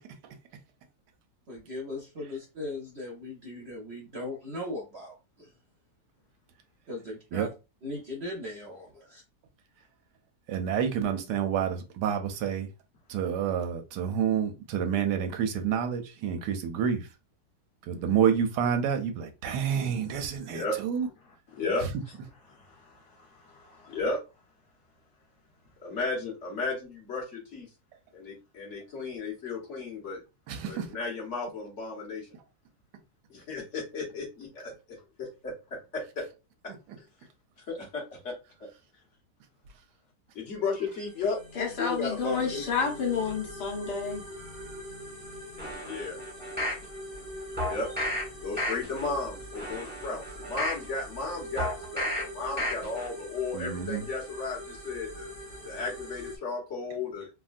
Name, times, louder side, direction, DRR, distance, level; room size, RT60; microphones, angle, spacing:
voice 1, 1.5-5.5 6.9-7.5 7.8-9.2, left 1 dB, 55° right, 0.7 m, -38 dB
voice 2, 10.5-12.7 13.1-17.1 17.8-21.1 21.8-21.9 30.5-30.9 53.5-54.0, right 8 dB, 85° right, 1.2 m, -28 dB
voice 3, 20.5-20.8 21.5-22.2 22.5-24.2 25.8-27.7 28.1-30.2 30.6-32.3 33.3-34.5 35.2-35.5 35.9-36.0 37.7-38.3 40.3-41.4 41.8-42.6 45.8-46.1 47.6-48.1 48.4-55.3 55.6-57.3, left 3 dB, 50° left, 1.4 m, -34 dB
sound 1, 41.0-56.4, equal, 20° left, 1.2 m, -43 dB
voice 4, 41.5-44.2, left 5 dB, 75° left, 1.7 m, -30 dB
sound 2, 45.6-46.8 47.6-48.2 48.6-49.1 49.5-50.8 51.6-52.2 52.6-53.1 53.5-53.6, left 1 dB, 5° right, 1.0 m, -32 dB
3.5 x 2.2 x 2.4 m
omnidirectional pair, 1.8 m